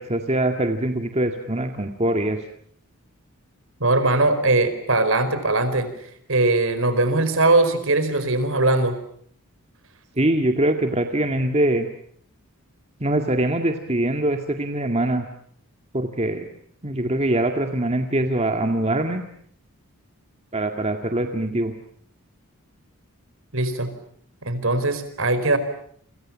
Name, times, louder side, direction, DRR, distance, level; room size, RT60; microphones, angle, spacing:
voice 1, 0.0-2.4 10.2-11.9 13.0-15.3 15.9-16.5 16.8-19.2 20.5-21.7, right 1 dB, 30° right, 5 dB, 2.0 m, -23 dB
voice 2, 3.8-5.9 6.3-9.0 23.5-23.9 24.4-25.6, right 2 dB, 60° right, 12 dB, 4.8 m, -20 dB
30.0 x 26.0 x 7.4 m, 0.64 s
head